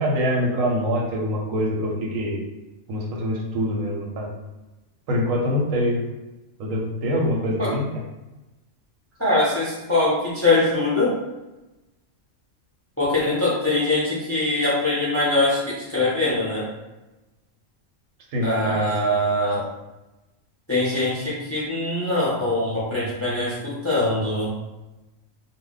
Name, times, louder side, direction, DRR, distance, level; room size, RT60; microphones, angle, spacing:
voice 1, 0.0-2.4 2.9-4.3 5.1-6.0 6.6-7.9 18.3-18.8, equal, 90° right, -1 dB, 1.1 m, -24 dB
voice 2, 9.2-11.2 13.0-16.7 18.4-19.7 20.7-24.5, left 2 dB, 20° left, -8 dB, 0.4 m, -22 dB
2.3 x 2.1 x 3.7 m, 1.0 s
omnidirectional pair, 1.4 m